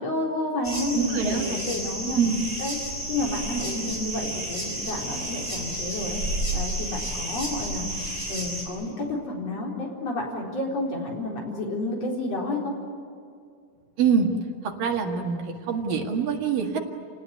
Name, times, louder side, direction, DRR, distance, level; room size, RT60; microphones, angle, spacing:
voice 1, 0.0-2.2 2.6-2.8 3.1-6.2 6.5-12.8, left 2 dB, 45° left, -2 dB, 5.2 m, -30 dB
sound 1, 0.6-8.6, right 1 dB, 10° left, 7.3 m, -31 dB
voice 2, 0.9-1.6 2.2-2.4 14.0-14.3 14.6-16.8, right 6 dB, 75° right, 2 dB, 3.6 m, -25 dB
29.0 x 18.5 x 9.7 m, 2.3 s
omnidirectional pair, 4.0 m